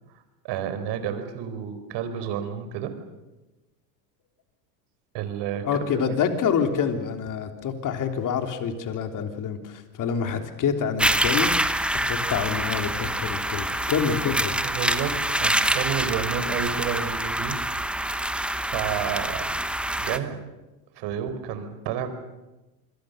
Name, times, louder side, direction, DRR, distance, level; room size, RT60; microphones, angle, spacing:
voice 1, 0.4-2.9 5.1-6.2 13.2-13.3 14.6-17.6 18.0-18.2 18.6-19.6 20.0-20.4 20.9-22.1, right 8 dB, 55° right, 10 dB, 4.5 m, -31 dB
voice 2, 5.6-11.6 12.1-14.6, left 7 dB, 40° left, 6 dB, 3.5 m, -27 dB
sound 1, 11.0-20.2, right 1 dB, ahead, 1.1 m, -26 dB
27.5 x 22.5 x 6.7 m, 1.1 s
supercardioid pair, 110°, 49 cm